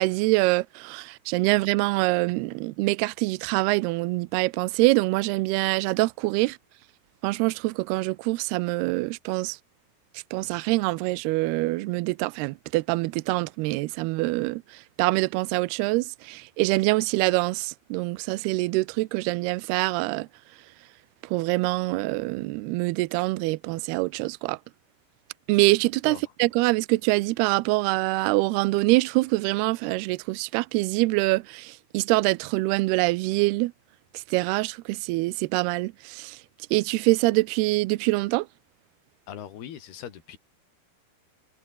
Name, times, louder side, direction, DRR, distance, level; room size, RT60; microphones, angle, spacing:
voice 1, 0.0-6.6 7.2-9.6 10.1-20.3 21.2-24.6 25.5-33.7 34.1-36.4 36.7-38.5, right 22 dB, 85° right, 2.3 m, -25 dB
voice 2, 39.3-40.4, left 9 dB, 60° left, 4.4 m, -40 dB
omnidirectional pair, 5.3 m